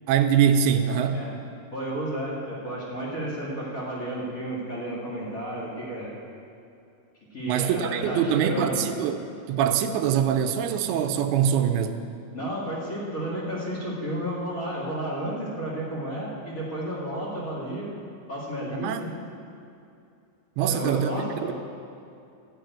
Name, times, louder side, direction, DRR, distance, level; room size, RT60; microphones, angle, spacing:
voice 1, 0.1-1.2 7.5-9.2 9.5-12.0 18.8-19.0 20.6-21.5, right 8 dB, 85° right, 7 dB, 2.6 m, -23 dB
voice 2, 1.7-6.1 7.3-8.8 12.3-17.9 18.3-19.1 20.6-21.5, right 1 dB, 30° left, -6 dB, 1.7 m, -32 dB
13.0 x 5.8 x 9.1 m, 2.5 s
omnidirectional pair, 4.4 m